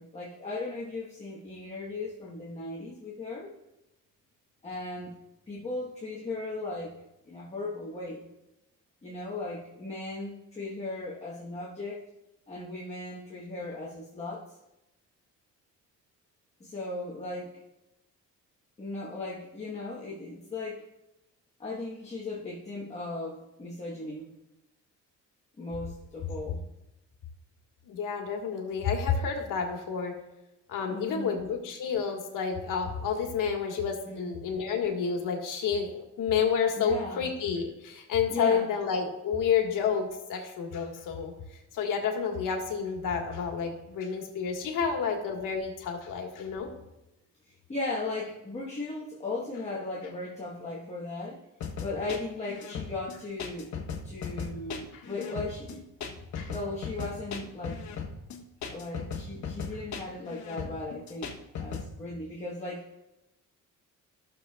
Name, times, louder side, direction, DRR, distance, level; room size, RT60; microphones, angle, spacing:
voice 1, 0.0-3.5 4.6-5.1 5.5-7.0 7.3-8.3 9.0-12.0 12.5-14.5 16.6-17.6 18.8-20.9 21.6-24.3 25.6-26.6 30.9-31.5 34.0-34.4 36.8-37.2 38.3-38.7 47.5-51.4 51.8-53.7 54.0-55.8 56.5-58.0 58.7-61.3 61.6-62.8, left 2 dB, 20° left, -5 dB, 1.1 m, -37 dB
voice 2, 27.8-30.1 30.7-41.3 41.7-46.7 54.9-55.0 56.3-56.5, left 6 dB, 80° left, 2 dB, 1.6 m, -30 dB
sound 1, 51.6-61.9, left 6 dB, 60° left, 1.2 m, -37 dB
15.5 x 6.7 x 2.3 m, 0.94 s
cardioid pair, 150°, 32 cm